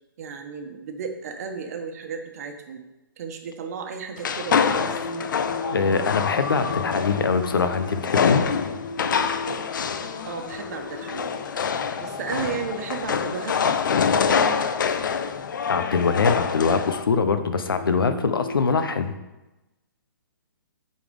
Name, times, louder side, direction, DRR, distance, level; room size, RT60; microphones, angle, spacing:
voice 1, 0.2-2.8 3.2-5.0 10.3-11.3 12.0-14.6, right 6 dB, 45° right, 5 dB, 1.1 m, -34 dB
sound 1, 4.2-17.0, left 6 dB, 65° left, 0.6 m, -26 dB
Singing, 4.5-18.5, left 2 dB, 30° left, 1.6 m, -40 dB
voice 2, 5.7-8.5 15.7-19.1, left 5 dB, 90° left, 9 dB, 0.9 m, -23 dB
8.6 x 4.1 x 5.3 m, 1.0 s
hypercardioid pair, 155°, 11 cm